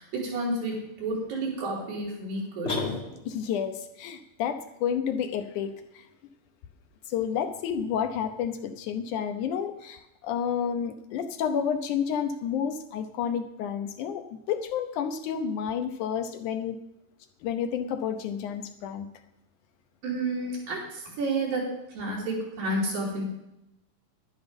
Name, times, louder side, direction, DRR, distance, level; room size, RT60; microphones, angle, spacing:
voice 1, 0.0-2.8 20.0-23.2, right 2 dB, 85° right, -3 dB, 5.3 m, -31 dB
sound 1, 2.7-3.6, left 3 dB, 45° left, 0.9 m, -32 dB
voice 2, 3.3-6.1 7.1-16.8 17.4-19.1, left 8 dB, 75° left, 7 dB, 2.1 m, -30 dB
11.0 x 10.0 x 5.2 m, 0.87 s
omnidirectional pair, 3.9 m